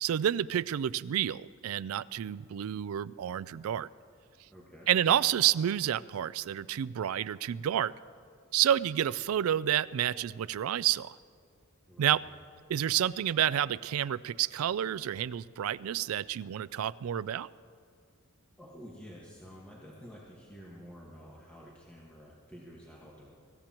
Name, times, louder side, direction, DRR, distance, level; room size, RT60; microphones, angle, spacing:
voice 1, 0.0-3.9 4.9-7.9 8.5-11.2 12.0-12.2 12.7-17.5, right 10 dB, 85° right, 17 dB, 0.3 m, -29 dB
voice 2, 4.5-4.9 11.9-12.3 18.6-23.4, equal, 5° left, -5 dB, 1.6 m, -50 dB
24.5 x 15.0 x 3.0 m, 2.2 s
head